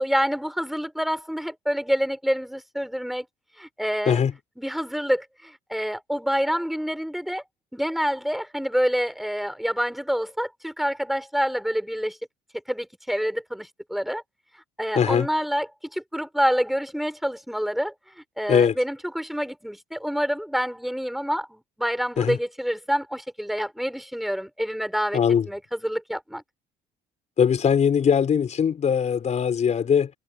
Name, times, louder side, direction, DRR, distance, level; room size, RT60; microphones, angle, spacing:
voice 1, 0.0-3.3 3.6-4.2 4.6-7.4 7.7-12.2 12.7-14.2 14.8-15.7 15.9-26.4, equal, ahead, 4.5 m, -27 dB
voice 2, 14.9-15.3 18.5-18.8 22.2-22.4 25.1-25.5 27.4-30.1, left 7 dB, 45° left, 4.4 m, -21 dB
cardioid pair, 110°, 17 cm